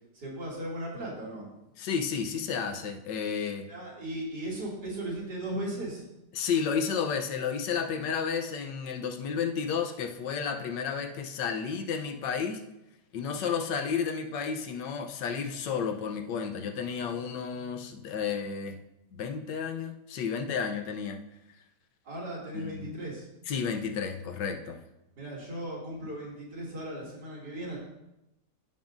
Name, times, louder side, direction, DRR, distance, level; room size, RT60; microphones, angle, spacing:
voice 1, 0.1-1.5 3.7-6.0 22.0-23.2 25.2-27.8, right 1 dB, 70° right, -5 dB, 3.2 m, -37 dB
voice 2, 1.8-3.7 6.3-12.6 13.1-18.8 19.1-21.2 22.5-22.9 23.5-24.8, left 6 dB, 80° left, 5 dB, 1.4 m, -32 dB
15.0 x 5.5 x 2.6 m, 0.90 s
omnidirectional pair, 1.9 m